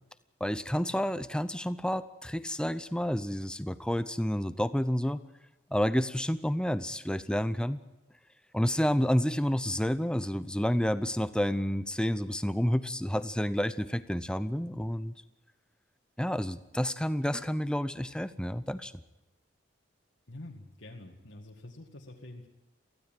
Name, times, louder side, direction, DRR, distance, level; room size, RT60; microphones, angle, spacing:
voice 1, 0.4-5.2 5.7-7.8 8.5-15.1 16.2-18.9, equal, 5° left, 13 dB, 0.6 m, -29 dB
voice 2, 20.3-22.5, left 1 dB, 70° left, -3 dB, 2.0 m, -47 dB
23.5 x 16.0 x 9.1 m, 1.0 s
head